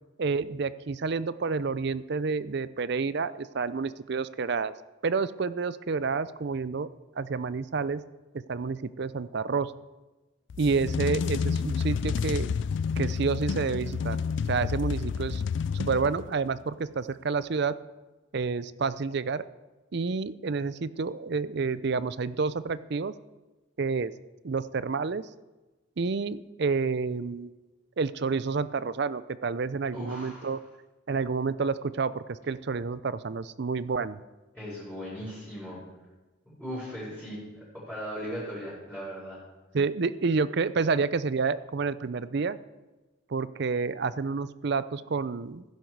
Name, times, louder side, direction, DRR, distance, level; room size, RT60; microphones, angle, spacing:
voice 1, 0.2-4.7 5.0-6.9 7.2-8.0 8.5-9.7 10.6-12.5 13.0-14.2 14.5-15.4 15.7-17.8 18.3-19.4 19.9-23.1 23.8-24.1 24.4-25.2 26.0-27.5 28.0-30.6 31.1-34.2 39.7-42.6 43.3-45.6, right 4 dB, 55° right, 16 dB, 0.5 m, -29 dB
sound 1, 10.5-16.5, left 6 dB, 60° left, 0.3 m, -30 dB
voice 2, 29.9-30.5 34.5-35.8 36.5-39.4, equal, 5° right, -11 dB, 5.6 m, -38 dB
16.0 x 10.5 x 4.7 m, 1.1 s
head